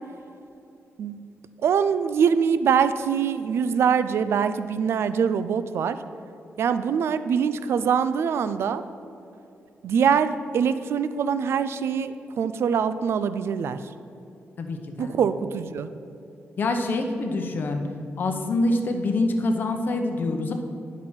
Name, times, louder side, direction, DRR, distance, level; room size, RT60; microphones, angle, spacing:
voice 1, 1.0-1.3 1.6-6.0 6.6-8.8 9.8-13.8 15.0-15.9, right 7 dB, 65° right, 12 dB, 0.3 m, -23 dB
voice 2, 14.6-15.1 16.6-17.8 18.2-20.5, left 2 dB, 45° left, 5 dB, 0.7 m, -25 dB
10.0 x 6.0 x 4.3 m, 2.7 s
wide cardioid pair, 160°, 5 cm